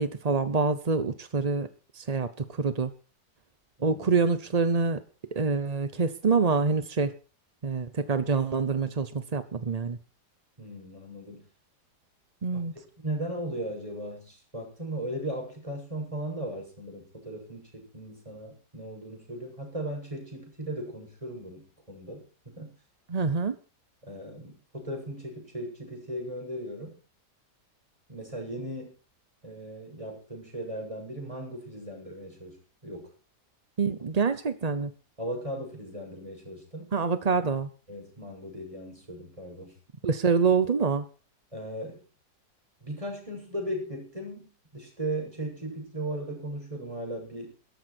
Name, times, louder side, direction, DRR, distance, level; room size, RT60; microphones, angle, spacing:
voice 1, 0.0-1.7 1.9-2.9 3.8-5.0 5.3-7.1 7.6-10.0 12.4-12.7 23.1-23.5 33.8-34.9 36.9-37.7 40.0-41.0, right 5 dB, 35° right, 11 dB, 0.7 m, -26 dB
voice 2, 10.6-11.4 12.5-12.6 13.0-22.7 24.0-26.9 28.1-28.9 29.4-33.1 35.2-36.9 37.9-39.8 41.5-42.0 42.8-47.5, right 1 dB, 20° right, 2 dB, 7.6 m, -37 dB
17.0 x 14.0 x 4.5 m, 0.37 s
omnidirectional pair, 1.8 m